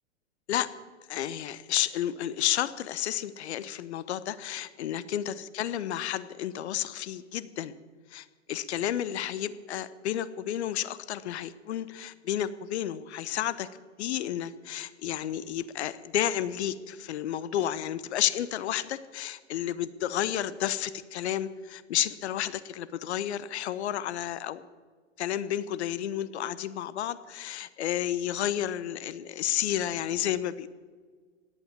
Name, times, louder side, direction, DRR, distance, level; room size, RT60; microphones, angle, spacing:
voice 1, 1.1-7.7 8.1-13.7 14.0-24.7 25.2-30.7, left 11 dB, 60° left, 16 dB, 1.0 m, -31 dB
17.0 x 11.0 x 7.3 m, 1.5 s
hypercardioid pair, 110°, 37 cm